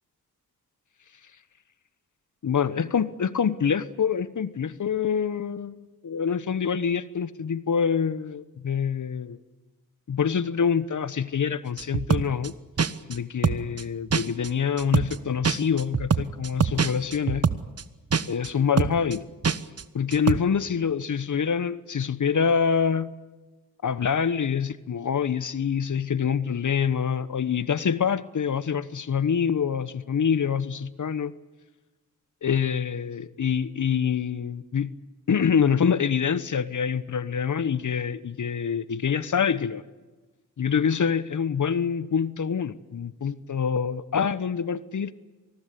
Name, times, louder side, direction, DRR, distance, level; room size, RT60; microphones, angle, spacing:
voice 1, 2.4-9.4 10.1-12.5 13.1-17.4 18.3-19.2 19.9-23.1 23.8-31.3 32.4-34.9 35.3-39.8 40.6-45.1, left 7 dB, 50° left, 16 dB, 1.1 m, -26 dB
sound 1, 11.8-12.5 12.8-13.2 13.4-13.8 14.1-14.5 14.8-15.2 15.4-17.8 18.1-18.5 18.8-19.2 19.4-19.8 20.1-20.4, right 6 dB, 40° right, 1.1 m, -24 dB
26.0 x 19.5 x 8.3 m, 1.2 s
supercardioid pair, 45°, 37 cm